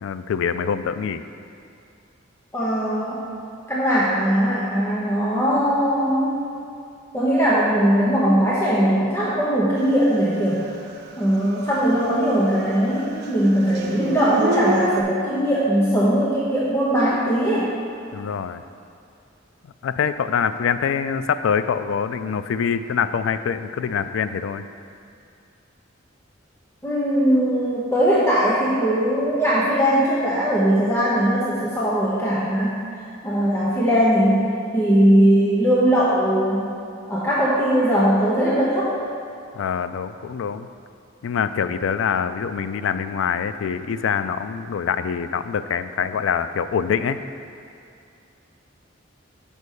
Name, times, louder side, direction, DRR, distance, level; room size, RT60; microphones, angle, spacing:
voice 1, 0.0-1.2 18.1-18.6 19.8-24.6 39.5-40.7 41.2-47.2, left 7 dB, 85° left, 11 dB, 0.3 m, -24 dB
voice 2, 2.5-3.2 3.7-6.4 7.1-10.6 11.2-17.7 26.8-32.8 33.2-34.5 34.7-36.7 37.1-39.0, equal, 15° left, -8 dB, 0.9 m, -20 dB
Dog / Siren, 10.7-10.8 11.2-12.7 12.9-15.0, right 1 dB, 55° right, 0.7 m, -26 dB
5.5 x 5.2 x 6.4 m, 2.5 s
head